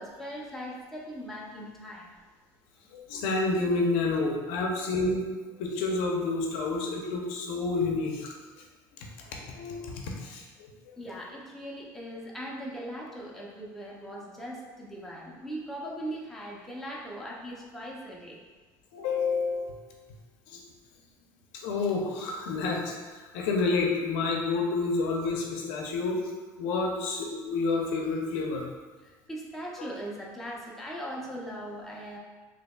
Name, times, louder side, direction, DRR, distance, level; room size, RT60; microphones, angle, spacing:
voice 1, 0.0-2.1 11.0-18.4 29.0-32.2, equal, 5° left, -4 dB, 0.6 m, -39 dB
voice 2, 2.9-5.2 5.6-8.3 9.5-10.7 18.9-19.8 20.5-20.6 21.6-22.8 23.2-26.2 26.6-28.7, left 3 dB, 85° left, 1 dB, 0.6 m, -29 dB
4.2 x 2.9 x 2.3 m, 1.3 s
cardioid pair, 125°, 9 cm